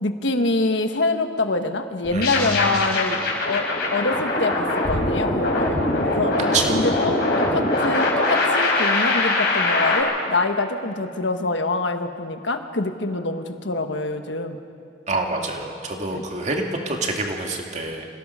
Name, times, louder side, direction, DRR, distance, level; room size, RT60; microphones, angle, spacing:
voice 1, 0.0-3.2 3.5-6.4 6.7-14.6 16.1-16.2, left 2 dB, 80° left, 7 dB, 1.4 m, -25 dB
sound 1, 2.0-10.0, left 2 dB, 60° left, 4.3 m, -22 dB
voice 2, 2.1-2.9 6.5-6.8 15.1-18.1, right 2 dB, 40° right, 2 dB, 2.2 m, -27 dB
26.5 x 17.5 x 5.6 m, 2.4 s
head